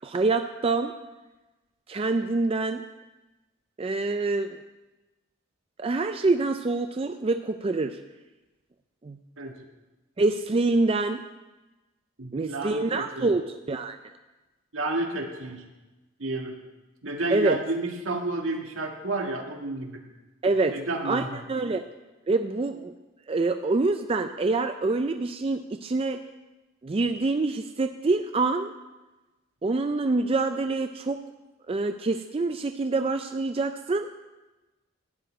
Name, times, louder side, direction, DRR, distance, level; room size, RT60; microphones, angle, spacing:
voice 1, 0.0-0.9 1.9-2.8 3.8-4.6 5.8-8.0 9.0-9.2 10.2-11.2 12.3-14.0 17.3-17.6 20.4-20.8 21.0-21.8 22.3-22.9 23.3-26.2 26.8-28.7 29.6-31.2 31.7-34.1, right 3 dB, 30° right, 7 dB, 0.4 m, -26 dB
voice 2, 12.2-13.3 14.7-15.6 16.2-16.5 17.0-20.0 20.7-21.4, right 2 dB, 75° right, 2 dB, 1.6 m, -31 dB
12.0 x 5.2 x 8.8 m, 1.1 s
head